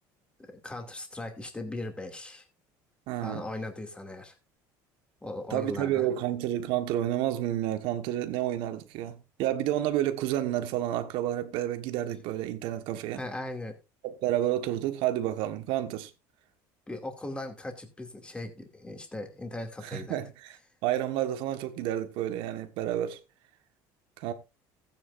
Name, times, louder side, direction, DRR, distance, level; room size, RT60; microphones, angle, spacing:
voice 1, 0.4-2.4 3.2-4.4 5.2-6.1 13.1-13.8 16.9-20.2, left 2 dB, 10° left, 2.6 m, -38 dB
voice 2, 3.1-3.4 5.5-13.2 14.0-16.1 19.8-20.6 20.8-23.2 24.2-24.3, right 12 dB, 75° right, 1.5 m, -30 dB
15.0 x 9.3 x 2.6 m
supercardioid pair, 110°, 9 cm